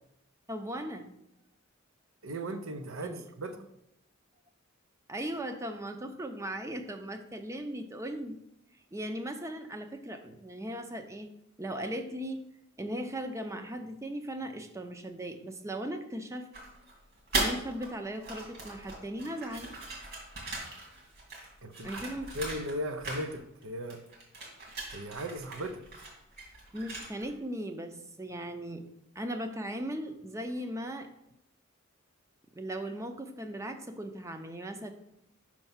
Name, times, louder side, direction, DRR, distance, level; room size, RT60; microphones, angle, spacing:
voice 1, 0.5-1.1 3.0-3.2 5.1-8.4 8.9-11.3 11.6-12.4 12.8-16.5 17.3-19.7 21.8-22.3 26.7-28.8 29.2-31.1 32.6-34.9, right 1 dB, 15° right, 7 dB, 0.6 m, -38 dB
voice 2, 2.2-3.6 21.6-22.0 22.3-24.0 24.9-25.8, right 1 dB, 75° right, 8 dB, 0.7 m, -37 dB
sound 1, 16.5-17.9 18.2-22.8 23.0-23.6 23.9-27.3, right 2 dB, 50° right, 2.5 m, -38 dB
5.5 x 4.6 x 5.6 m, 0.80 s
head